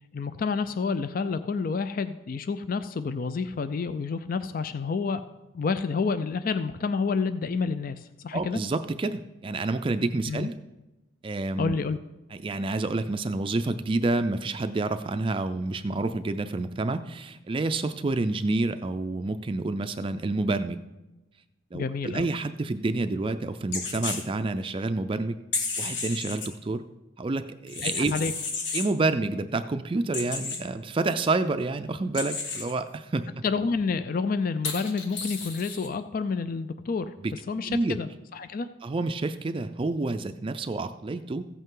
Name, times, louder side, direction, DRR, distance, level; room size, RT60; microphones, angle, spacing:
voice 1, 0.1-5.2 5.5-8.6 10.3-10.5 11.6-12.0 21.7-22.3 27.8-28.3 33.4-37.1 37.5-38.7, left 4 dB, 50° left, 11 dB, 0.4 m, -29 dB
voice 2, 8.3-10.5 11.2-11.8 12.3-20.8 21.7-25.4 25.8-26.8 27.2-28.1 28.7-33.3 37.2-37.3 37.7-38.0 38.8-41.4, right 2 dB, 30° right, 9 dB, 0.4 m, -28 dB
sound 1, 23.7-24.2 25.5-26.5 27.7-28.9 30.1-30.6 32.1-32.7 34.6-35.9, left 4 dB, 75° left, 1.6 m, -32 dB
15.0 x 8.1 x 3.8 m, 1.0 s
head